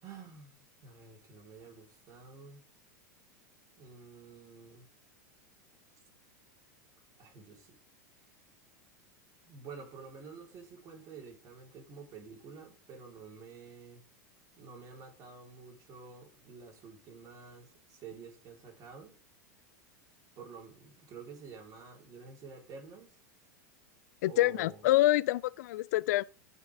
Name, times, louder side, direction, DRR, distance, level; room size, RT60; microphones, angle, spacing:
voice 1, 0.0-2.6 3.8-4.9 7.2-7.8 9.5-14.0 14.6-19.2 20.4-23.2 24.2-24.9, right 5 dB, 40° right, 4.2 m, -50 dB
voice 2, 24.2-26.2, left 16 dB, 65° left, 0.4 m, -26 dB
11.5 x 5.8 x 3.7 m
hypercardioid pair, 95°, 10 cm